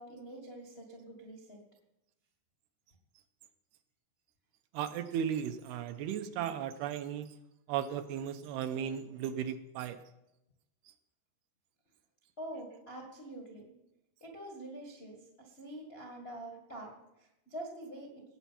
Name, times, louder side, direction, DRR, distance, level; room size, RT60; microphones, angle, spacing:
voice 1, 0.0-1.6 12.4-13.7 14.2-18.2, right 1 dB, 80° left, 0 dB, 0.5 m, -46 dB
voice 2, 4.7-7.4 7.7-10.0, right 9 dB, 80° right, 9 dB, 2.6 m, -36 dB
18.5 x 8.1 x 5.8 m, 0.88 s
omnidirectional pair, 4.8 m